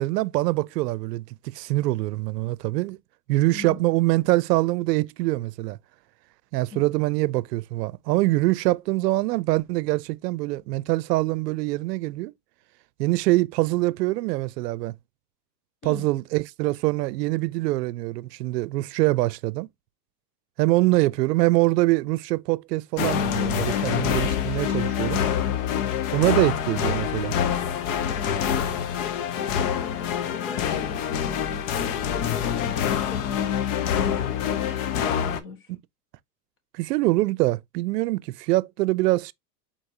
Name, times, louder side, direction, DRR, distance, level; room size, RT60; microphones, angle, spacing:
voice 1, 0.0-3.0 3.3-5.8 6.5-12.3 13.0-14.9 15.8-19.7 20.6-25.2 26.1-27.3 35.7-35.8 36.7-39.3, right 19 dB, 90° right, 0.6 m, -24 dB
voice 2, 3.5-4.3 6.7-7.2 15.8-16.0 28.1-28.8 29.3-34.2 35.0-35.7, left 4 dB, 25° left, 1.2 m, -40 dB
sound 1, 23.0-35.4, left 8 dB, 55° left, 0.9 m, -26 dB
4.6 x 4.2 x 2.6 m
supercardioid pair, 145°, 47 cm